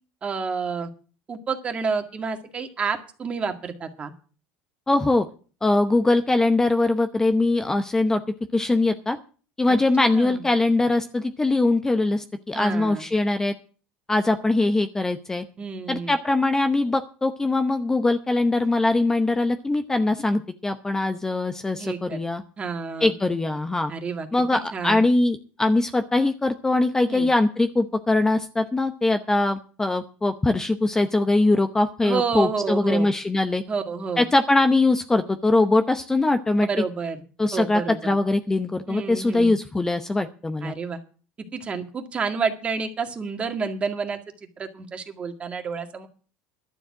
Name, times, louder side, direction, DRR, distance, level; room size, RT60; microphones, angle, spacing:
voice 1, 0.2-0.9 1.3-4.1 9.7-10.4 12.5-13.0 15.6-16.1 21.8-22.2 22.6-23.1 23.9-24.3 24.5-25.0 27.1-27.3 32.0-33.1 33.7-34.3 36.6-37.2 37.5-38.0 38.9-39.5 40.6-41.0 41.5-44.2 44.6-46.1, right 5 dB, 25° right, 6 dB, 2.0 m, -29 dB
voice 2, 4.9-5.3 5.6-8.2 8.5-9.2 9.6-13.5 14.1-15.4 15.9-22.4 23.0-23.9 24.3-33.6 34.2-36.7 37.4-40.7, left 2 dB, 10° left, 8 dB, 0.8 m, -22 dB
12.0 x 7.2 x 8.5 m, 0.39 s
supercardioid pair, 125°, 4 cm